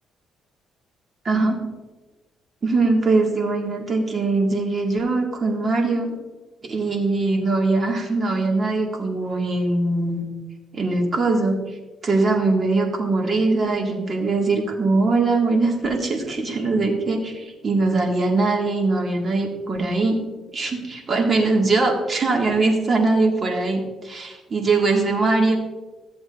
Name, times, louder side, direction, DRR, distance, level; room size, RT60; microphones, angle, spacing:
voice 1, 1.2-1.6 2.6-6.1 6.6-10.3 10.7-11.8 12.0-20.2 20.5-25.6, right 3 dB, 40° right, 1 dB, 1.9 m, -21 dB
14.5 x 7.8 x 2.6 m, 1.2 s
cardioid pair, 90°, 0 cm